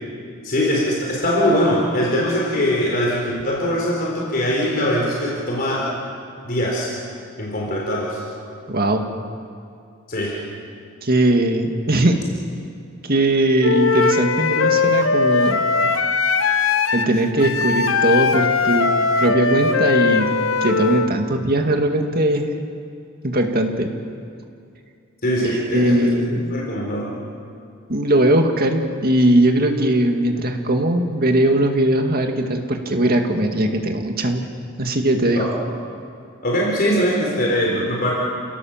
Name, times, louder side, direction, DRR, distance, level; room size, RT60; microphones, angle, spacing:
voice 1, 0.4-5.9 6.4-6.9 7.4-8.2 10.1-10.4 25.2-26.2 26.5-27.1 35.3-35.5 36.4-38.1, equal, 50° left, -3 dB, 4.2 m, -21 dB
voice 2, 8.7-9.0 11.0-12.2 13.0-15.7 16.9-22.5 23.2-23.9 25.7-26.5 27.9-34.5 34.8-35.5, right 1 dB, 50° right, 4 dB, 2.1 m, -19 dB
Wind instrument woodwind instrument, 13.6-21.1, left 4 dB, 80° left, 1.1 m, -19 dB
29.5 x 17.5 x 7.4 m, 2.4 s
head